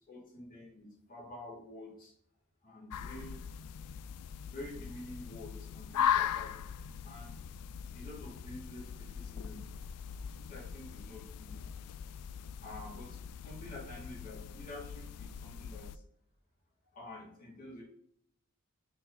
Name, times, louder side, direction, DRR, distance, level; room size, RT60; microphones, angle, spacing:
voice 1, 0.1-2.1 2.6-3.4 4.5-6.5 7.0-7.4 7.9-9.6 10.5-11.5 12.0-12.1 12.6-15.9 16.9-17.8, left 1 dB, 40° left, -4 dB, 2.5 m, -48 dB
sound 1, 2.9-16.0, left 8 dB, 90° left, 0.4 m, -39 dB
6.6 x 4.0 x 3.9 m, 0.67 s
head